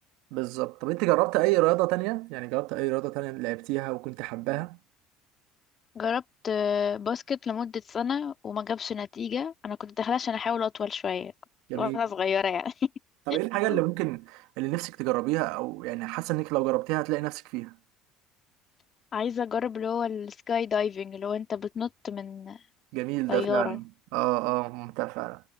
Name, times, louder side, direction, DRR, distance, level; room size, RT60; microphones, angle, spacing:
voice 1, 0.3-4.8 11.7-12.0 13.3-17.7 22.9-23.8 24.1-25.4, right 22 dB, 70° right, 1.4 m, -28 dB
voice 2, 6.0-11.3 11.7-12.9 13.7-13.8 19.1-22.6 23.3-23.8, left 7 dB, 40° left, 2.1 m, -30 dB
hypercardioid pair, 75°, 0 cm